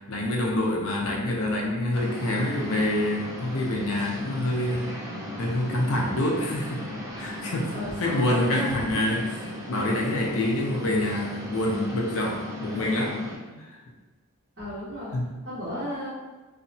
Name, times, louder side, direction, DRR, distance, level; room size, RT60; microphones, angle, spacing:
voice 1, 0.1-5.0 5.4-6.8 7.2-13.2 13.5-13.8 15.1-15.3, left 1 dB, 65° left, -1 dB, 0.5 m, -27 dB
sound 1, 1.9-13.4, left 1 dB, 15° right, 0.4 m, -37 dB
voice 2, 7.7-8.8 14.6-15.1 15.4-16.1, equal, 55° right, -14 dB, 1.1 m, -33 dB
2.7 x 2.1 x 2.6 m, 1.2 s
head